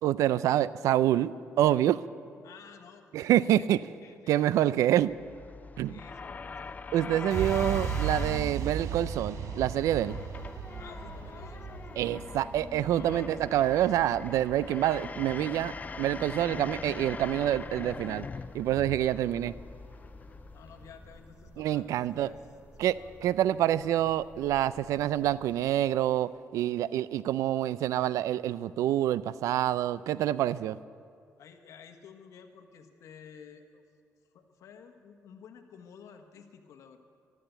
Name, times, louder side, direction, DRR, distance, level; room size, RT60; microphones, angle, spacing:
voice 1, 0.0-2.0 3.1-3.8 4.3-5.1 5.8-6.0 6.9-10.2 12.0-18.3 18.5-19.5 21.6-22.3 22.8-30.8, right 12 dB, 90° right, 18 dB, 0.4 m, -27 dB
voice 2, 2.4-3.1 3.6-3.7 4.0-4.8 5.9-7.3 10.7-12.2 12.9-13.3 19.1-19.4 20.5-22.4 22.9-23.4 31.4-33.8 34.3-37.0, left 7 dB, 80° left, 6 dB, 1.4 m, -52 dB
sound 1, 5.0-21.3, left 4 dB, 30° left, 0.4 m, -42 dB
sound 2, 7.3-15.2, right 7 dB, 70° right, 0.9 m, -36 dB
sound 3, 9.6-26.3, right 1 dB, 30° right, 3.3 m, -55 dB
14.5 x 12.5 x 8.1 m, 2.4 s
cardioid pair, 90°, 5 cm